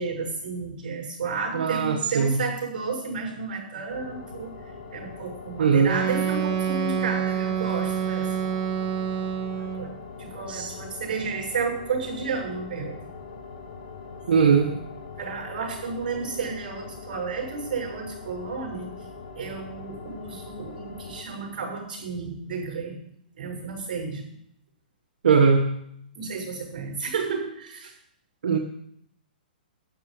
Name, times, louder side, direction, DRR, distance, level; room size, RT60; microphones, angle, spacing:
voice 1, 0.0-4.5 4.9-8.5 9.6-9.9 10.2-13.0 14.2-14.8 15.2-18.9 19.3-23.0 23.4-24.2 26.1-27.9, right 4 dB, 55° right, 1 dB, 6.3 m, -32 dB
voice 2, 1.5-2.4 5.6-5.9 10.5-10.7 14.3-14.7 25.2-25.6 28.4-28.6, right 5 dB, 80° right, 2 dB, 1.3 m, -20 dB
sound 1, 3.9-21.2, left 4 dB, 60° left, 3.0 m, -42 dB
Wind instrument woodwind instrument, 5.8-9.9, right 8 dB, 30° right, 1.4 m, -27 dB
12.0 x 9.7 x 5.0 m, 0.71 s
hypercardioid pair, 160°, 5 cm